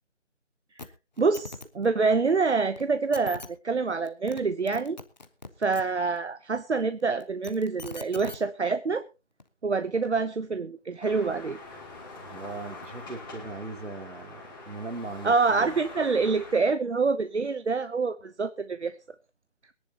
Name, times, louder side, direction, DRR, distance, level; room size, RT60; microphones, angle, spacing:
sound 1, 0.8-0.9 1.2-1.7 2.8-2.9 3.1-3.5 4.1-4.4 4.7-5.8 7.2-8.4 9.4-9.5, left 3 dB, 35° left, 1.1 m, -41 dB
voice 1, 1.2-5.0 5.6-9.0 9.6-11.6 15.2-18.9, right 4 dB, 65° right, 0.9 m, -26 dB
sound 2, 11.0-16.6, left 2 dB, 20° left, 2.9 m, -44 dB
voice 2, 12.3-15.8, right 3 dB, 80° right, 2.9 m, -39 dB
22.5 x 10.5 x 2.9 m
figure-of-eight pair, 170°, 37 cm